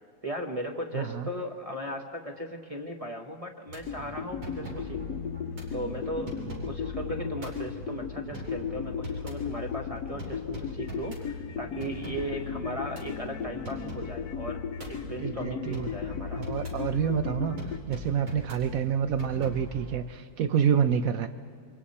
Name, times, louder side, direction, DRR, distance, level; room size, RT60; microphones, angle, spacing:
voice 1, 0.2-5.2 5.7-14.6 14.8-16.4, equal, 25° right, 1 dB, 0.8 m, -37 dB
voice 2, 0.9-1.3 15.2-15.9 16.3-21.3, right 8 dB, 85° right, 10 dB, 0.7 m, -28 dB
sound 1, 3.7-20.0, equal, 70° right, 4.3 m, -43 dB
sound 2, 3.8-17.8, left 7 dB, 60° left, 1.0 m, -36 dB
27.5 x 24.0 x 4.2 m, 2.3 s
omnidirectional pair, 2.3 m